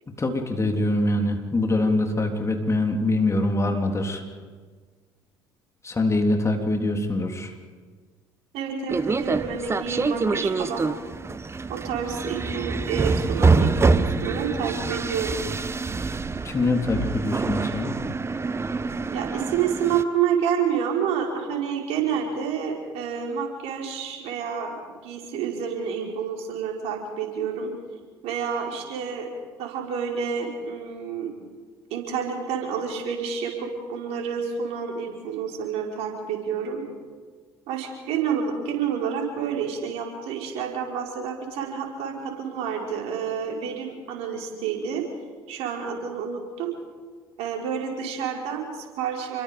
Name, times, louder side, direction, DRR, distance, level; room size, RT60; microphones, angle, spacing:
voice 1, 0.2-4.2 5.8-7.5 16.4-18.0, left 2 dB, 25° left, 3 dB, 3.5 m, -24 dB
voice 2, 8.5-10.9 11.7-15.4 19.1-27.7 28.2-29.3 29.6-31.3 31.9-36.8 37.7-45.0 45.5-46.7 47.4-49.4, right 7 dB, 60° right, 1 dB, 4.9 m, -29 dB
sound 1, 8.9-20.0, right 4 dB, 20° right, 1.1 m, -25 dB
29.0 x 23.0 x 5.3 m, 1.5 s
figure-of-eight pair, 60°, 12 cm